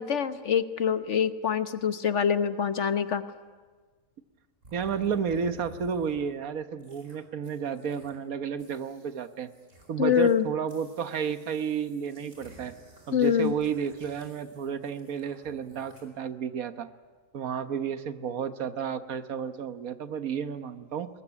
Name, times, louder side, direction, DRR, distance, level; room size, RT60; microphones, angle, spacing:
voice 1, 0.0-3.2 10.0-10.5 13.1-13.5, left 8 dB, 60° left, 11 dB, 1.3 m, -25 dB
sound 1, 4.6-6.3 6.8-7.2 7.4-8.3 8.6-10.4 10.7-16.0, right 1 dB, 60° right, 4.9 m, -54 dB
voice 2, 4.7-9.5 9.9-12.8 13.1-16.9 17.3-21.1, right 7 dB, 75° right, 10 dB, 1.6 m, -32 dB
21.5 x 21.0 x 9.9 m, 1.4 s
omnidirectional pair, 1.5 m